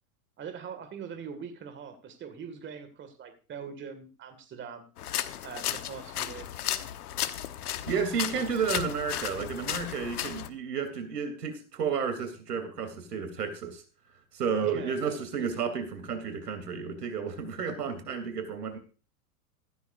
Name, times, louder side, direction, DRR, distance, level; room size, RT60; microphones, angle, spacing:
voice 1, 0.4-4.9 5.4-6.6 14.6-15.2, right 6 dB, 25° right, 9 dB, 2.1 m, -42 dB
sound 1, 5.0-10.5, left 11 dB, 70° left, 1.2 m, -34 dB
voice 2, 7.9-13.8 14.3-18.8, right 6 dB, 80° right, 7 dB, 3.2 m, -32 dB
15.0 x 12.5 x 2.6 m, 0.36 s
hypercardioid pair, 105°, 47 cm